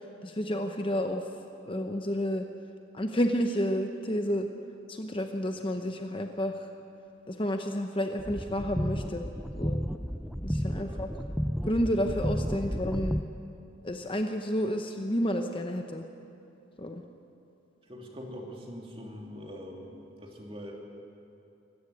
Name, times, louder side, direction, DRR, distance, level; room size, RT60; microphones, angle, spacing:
voice 1, 0.2-1.2 1.7-2.4 2.9-4.5 4.9-6.7 7.3-9.2 9.6-9.8 10.4-11.1 11.6-13.2 13.8-16.0 16.8-17.0, equal, 25° left, 5 dB, 0.9 m, -30 dB
Santos Dream, 8.2-13.2, equal, ahead, 0.4 m, -32 dB
voice 2, 10.8-11.1 17.8-20.7, equal, 30° right, 0 dB, 2.9 m, -43 dB
24.5 x 14.5 x 8.5 m, 2.7 s
head